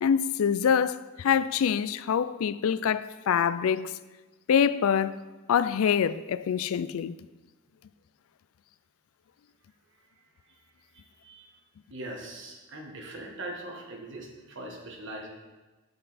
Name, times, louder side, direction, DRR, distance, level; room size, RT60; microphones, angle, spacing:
voice 1, 0.0-4.0 4.5-5.2 5.5-7.2, left 7 dB, 75° left, 0.3 m, -25 dB
voice 2, 10.9-11.5 11.9-15.3, right 1 dB, 60° right, 1.5 m, -41 dB
8.7 x 7.5 x 4.2 m
head